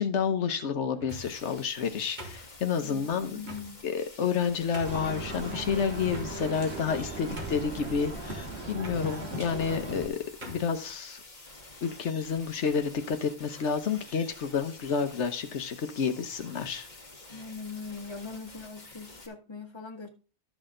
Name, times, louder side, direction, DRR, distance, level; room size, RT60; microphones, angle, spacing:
voice 1, 0.0-3.4 3.8-10.2 10.5-11.2 11.8-16.9, left 6 dB, 85° left, 1.2 m, -30 dB
sound 1, 0.9-1.5 2.2-2.9 3.4-3.7 4.3-4.4 4.7-5.1 6.1-6.6 7.0-7.1 7.4-7.8 8.8-9.0 9.9-10.0 10.4-10.7, equal, 45° right, 2.4 m, -43 dB
sound 2, 1.1-19.3, left 2 dB, 40° left, 1.7 m, -49 dB
voice 2, 2.8-3.8 17.3-20.1, left 4 dB, 25° left, 1.8 m, -41 dB
sound 3, 4.8-10.1, right 1 dB, 70° right, 2.3 m, -37 dB
12.5 x 6.3 x 3.8 m
omnidirectional pair, 1.1 m